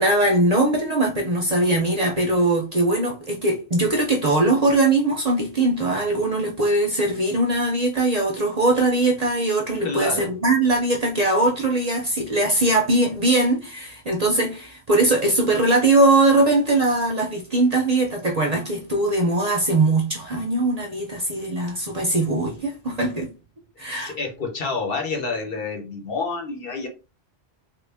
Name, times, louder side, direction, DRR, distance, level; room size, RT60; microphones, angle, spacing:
voice 1, 0.0-23.3 23.8-24.1, right 2 dB, 45° right, 0.6 m, -21 dB
voice 2, 9.8-10.3 23.9-26.9, left 4 dB, 60° left, 1.0 m, -28 dB
3.2 x 2.4 x 3.3 m
omnidirectional pair, 1.1 m